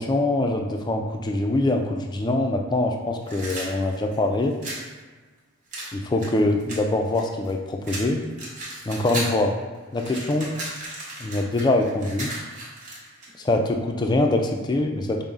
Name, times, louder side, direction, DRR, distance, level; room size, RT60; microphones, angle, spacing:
voice 1, 0.0-4.6 5.9-8.2 8.9-9.5 9.9-10.5 11.2-12.3 13.4-15.2, left 2 dB, 20° left, 3 dB, 0.3 m, -23 dB
sound 1, 3.2-4.9 5.7-7.5 7.8-9.4 9.7-13.3, right 1 dB, 40° right, 1.0 m, -35 dB
5.2 x 2.0 x 3.5 m, 1.4 s
head